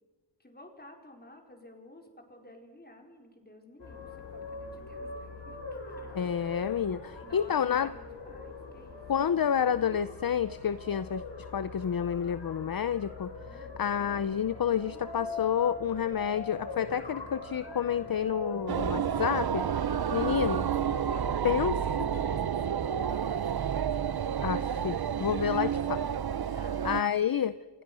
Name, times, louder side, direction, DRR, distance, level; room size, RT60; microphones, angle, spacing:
voice 1, 0.4-6.3 7.2-9.0 13.4-13.9 20.0-22.9 26.5-26.9, left 1 dB, 20° left, 3 dB, 4.9 m, -51 dB
sound 1, 3.8-22.2, left 3 dB, 85° left, 5.2 m, -41 dB
voice 2, 6.2-7.9 9.1-11.2 11.5-20.6 21.4-21.7 24.4-26.1 26.8-27.5, left 8 dB, 55° left, 14 dB, 0.7 m, -29 dB
sound 2, 18.7-27.0, right 8 dB, 60° right, 0.8 m, -30 dB
29.0 x 27.5 x 6.3 m, 1.3 s
wide cardioid pair, 110°, 42 cm